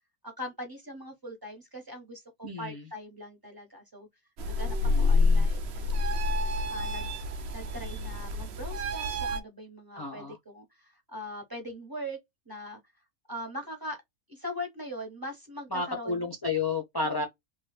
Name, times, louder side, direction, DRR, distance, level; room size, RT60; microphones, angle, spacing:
voice 1, 0.2-4.1 4.5-6.0 6.7-7.1 7.5-12.2 12.5-12.8 13.3-14.0 14.3-16.3 17.0-17.3, equal, 15° right, 1.0 m, -41 dB
voice 2, 2.4-2.8 4.8-5.5 9.9-10.4 15.7-17.2, left 4 dB, 25° left, 0.5 m, -32 dB
sound 1, 4.4-9.4, left 3 dB, 60° right, 0.7 m, -28 dB
3.2 x 2.3 x 3.3 m
omnidirectional pair, 1.5 m